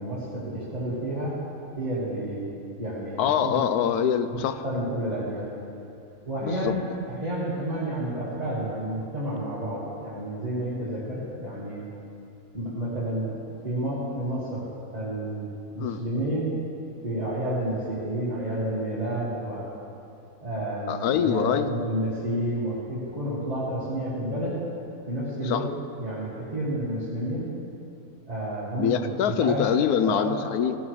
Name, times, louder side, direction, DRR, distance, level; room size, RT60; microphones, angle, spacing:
voice 1, 0.0-1.4 1.8-2.5 2.8-3.6 4.3-5.5 6.2-11.8 12.5-13.4 13.6-14.6 14.9-15.5 15.7-16.5 17.0-19.7 20.4-24.5 25.1-25.6 26.0-27.5 28.3-30.3, right 1 dB, 25° right, -10 dB, 2.0 m, -30 dB
voice 2, 3.2-4.6 6.4-6.7 15.8-16.0 20.9-21.7 25.4-25.7 28.8-30.8, left 8 dB, 90° left, 10 dB, 1.1 m, -24 dB
15.5 x 11.5 x 3.2 m, 2.6 s
omnidirectional pair, 1.6 m